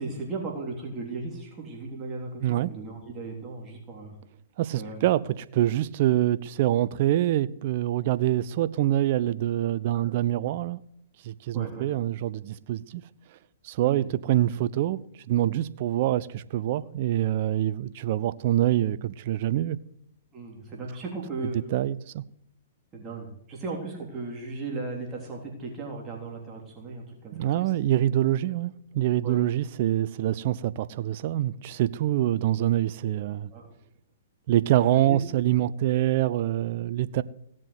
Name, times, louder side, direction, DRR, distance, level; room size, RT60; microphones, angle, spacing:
voice 1, 0.0-4.2 4.7-5.1 9.9-10.1 11.5-11.9 13.8-14.1 20.3-21.6 22.9-27.9 29.2-29.4 33.5-33.7 34.8-35.2, right 3 dB, 25° right, 3.6 m, -36 dB
voice 2, 2.4-2.7 4.6-10.8 11.2-13.0 13.6-15.0 15.3-19.8 21.7-22.2 27.3-33.5 34.5-37.2, right 13 dB, 50° right, 0.6 m, -25 dB
17.0 x 7.5 x 8.2 m
hypercardioid pair, 120°, 0 cm